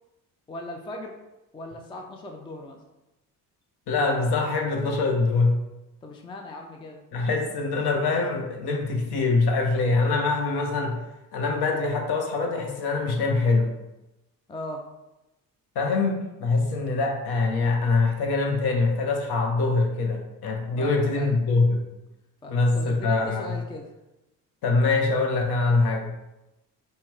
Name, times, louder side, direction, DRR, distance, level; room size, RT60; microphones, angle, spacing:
voice 1, 0.5-1.1 1.5-2.8 6.0-7.0 14.5-14.9 20.8-21.4 22.4-23.9, left 1 dB, 10° left, 3 dB, 0.4 m, -38 dB
voice 2, 3.9-5.5 7.1-11.0 11.3-13.7 15.7-21.8 22.5-23.6 24.6-26.1, left 3 dB, 55° left, 2 dB, 0.9 m, -24 dB
5.4 x 2.1 x 3.3 m, 0.97 s
hypercardioid pair, 50°, 47 cm